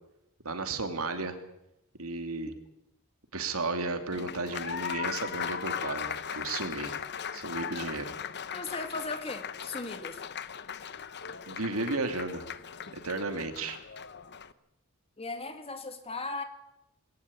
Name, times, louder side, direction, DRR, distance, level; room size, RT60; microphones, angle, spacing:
voice 1, 0.4-1.4 2.0-2.5 3.3-6.9 7.3-8.1 11.5-12.5 12.9-13.8, right 3 dB, 75° right, 7 dB, 2.8 m, -33 dB
Applause, 4.1-14.5, left 8 dB, 50° left, 1.0 m, -38 dB
voice 2, 8.5-10.2 15.2-16.4, left 3 dB, 30° left, 8 dB, 2.3 m, -37 dB
21.0 x 18.5 x 8.7 m, 0.83 s
head